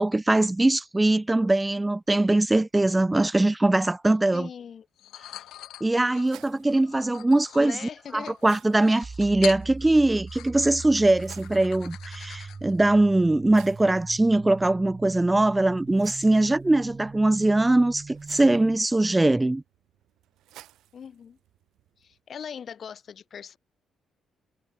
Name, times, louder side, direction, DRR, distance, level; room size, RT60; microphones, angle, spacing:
voice 1, 0.0-4.5 5.8-7.8 8.1-19.6, right 2 dB, 15° right, 0.4 m, -22 dB
voice 2, 4.3-4.9 7.5-8.4 20.9-21.4 22.0-23.6, left 7 dB, 55° left, 1.9 m, -40 dB
sound 1, 5.0-12.8, left 13 dB, 85° left, 1.8 m, -43 dB
sound 2, 5.2-22.2, right 14 dB, 85° right, 1.9 m, -56 dB
sound 3, 9.0-18.8, right 4 dB, 30° right, 2.8 m, -41 dB
cardioid pair, 90°, 0 cm